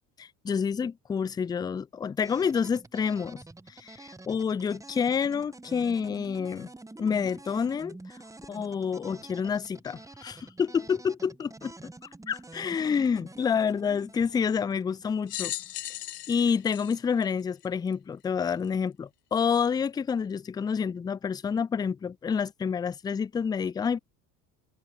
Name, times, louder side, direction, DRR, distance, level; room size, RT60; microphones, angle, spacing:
voice 1, 0.2-3.4 3.8-6.7 7.0-8.0 8.5-11.7 12.3-15.5 16.3-24.0, left 6 dB, 10° left, 0.4 m, -28 dB
sound 1, 2.2-16.1, right 2 dB, 5° right, 1.4 m, -48 dB
sound 2, 15.3-17.9 18.6-18.7 19.9-20.0, left 14 dB, 70° left, 1.8 m, -37 dB
figure-of-eight pair, 70°, 49 cm